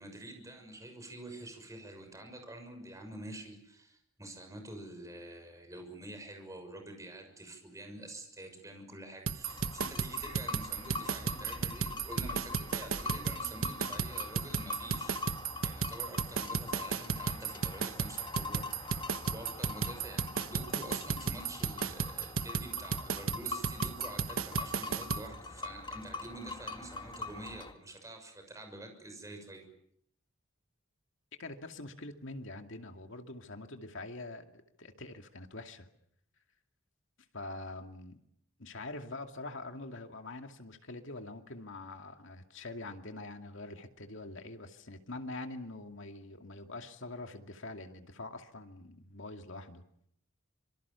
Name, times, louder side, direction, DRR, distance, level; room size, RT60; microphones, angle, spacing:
voice 1, 0.0-29.7, right 1 dB, 15° right, 5 dB, 6.3 m, -47 dB
sound 1, 9.3-25.2, right 5 dB, 85° right, 1.2 m, -34 dB
sound 2, 9.4-27.7, left 3 dB, 25° left, 2.0 m, -43 dB
voice 2, 31.4-35.9 37.3-38.2 38.6-49.8, left 2 dB, 65° left, 5 dB, 2.4 m, -44 dB
26.0 x 24.0 x 7.0 m, 0.72 s
head